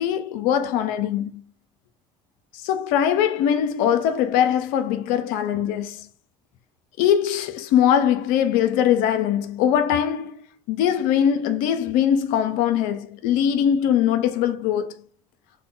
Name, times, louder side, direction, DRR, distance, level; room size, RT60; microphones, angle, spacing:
voice 1, 0.0-1.4 2.5-6.1 7.0-10.4 10.7-15.0, left 9 dB, 75° left, 0.4 m, -21 dB
3.3 x 2.1 x 3.5 m
supercardioid pair, 75°, 14 cm